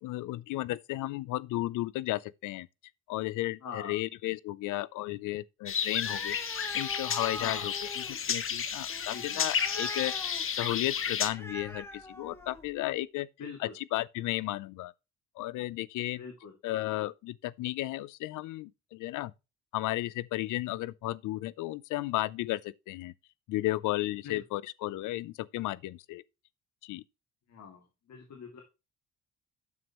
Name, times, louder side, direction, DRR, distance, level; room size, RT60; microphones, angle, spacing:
voice 1, 0.0-2.7 3.1-13.3 13.6-14.9 15.4-16.2 16.6-19.3 19.7-23.1 23.5-26.2 26.8-27.0, left 17 dB, 85° left, 0.5 m, -34 dB
voice 2, 3.6-4.0 7.3-7.7 9.1-9.4 13.4-13.7 16.2-16.5 24.2-24.4 27.5-28.6, left 6 dB, 65° left, 2.3 m, -43 dB
sound 1, 5.7-11.3, left 7 dB, 45° left, 1.0 m, -32 dB
Animal, 6.0-12.8, left 1 dB, 10° left, 1.5 m, -44 dB
9.4 x 7.0 x 3.0 m
cardioid pair, 90°, 30 cm